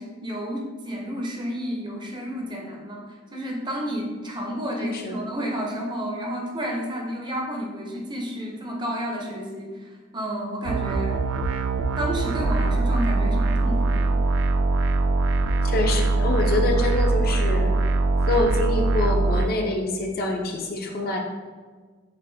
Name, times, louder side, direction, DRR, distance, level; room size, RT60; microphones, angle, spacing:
voice 1, 0.0-3.0 3.3-11.3 12.0-14.1, equal, 20° right, 0 dB, 0.6 m, -31 dB
voice 2, 4.8-5.2 15.6-17.7 18.3-21.2, left 2 dB, 45° left, 2 dB, 0.5 m, -26 dB
sound 1, 10.6-19.5, right 3 dB, 80° right, 0.3 m, -22 dB
7.2 x 2.5 x 2.6 m, 1.5 s
head